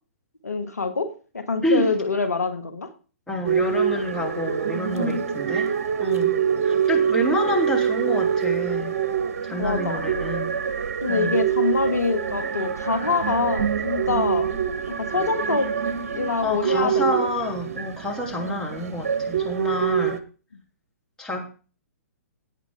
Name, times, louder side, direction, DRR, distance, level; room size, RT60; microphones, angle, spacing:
voice 1, 0.4-2.9 4.9-5.3 9.6-10.1 11.0-14.5 14.9-15.7 16.1-17.2 18.3-18.6 20.5-20.6, left 4 dB, 80° left, 10 dB, 2.3 m, -25 dB
voice 2, 3.3-5.7 6.0-6.4 6.6-9.0 9.4-10.5 11.1-11.4 16.4-20.2 21.2-21.5, left 1 dB, 5° left, -2 dB, 3.8 m, -28 dB
sound 1, 3.4-20.2, right 7 dB, 55° right, 1.6 m, -25 dB
17.0 x 9.3 x 3.8 m, 0.36 s
figure-of-eight pair, 125°, 8 cm